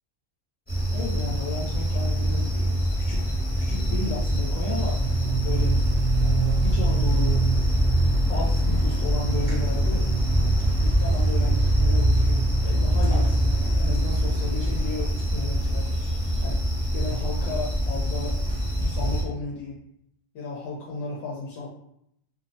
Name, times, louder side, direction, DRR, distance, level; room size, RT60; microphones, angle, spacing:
sound 1, 0.7-19.2, right 1 dB, 10° left, 0.7 m, -23 dB
voice 1, 0.9-3.2 3.6-5.7 6.2-7.5 8.3-10.1 10.8-15.9 16.4-18.4 18.8-19.8 20.3-21.7, left 3 dB, 90° left, -3 dB, 1.0 m, -34 dB
2.7 x 2.0 x 2.5 m, 0.75 s
omnidirectional pair, 1.3 m